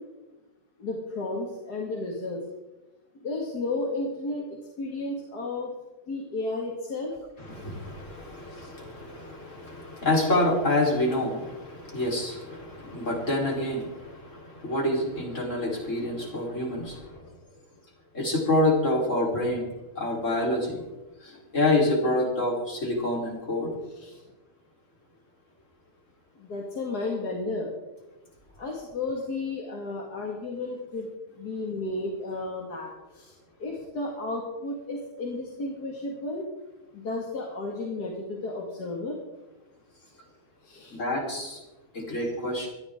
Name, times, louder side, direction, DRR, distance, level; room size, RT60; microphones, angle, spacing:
voice 1, 0.8-2.4 3.2-5.7 6.1-7.1 24.0-24.2 26.4-27.7 28.6-31.1 31.4-33.3 33.6-36.5 36.9-39.2 40.6-41.0, left 2 dB, 85° left, -1 dB, 2.6 m, -33 dB
voice 2, 7.4-17.2 18.1-19.7 20.0-20.8 21.2-23.7 40.9-41.6 41.9-42.7, left 1 dB, 50° left, -2 dB, 4.3 m, -27 dB
20.0 x 14.0 x 3.7 m, 1.1 s
omnidirectional pair, 1.7 m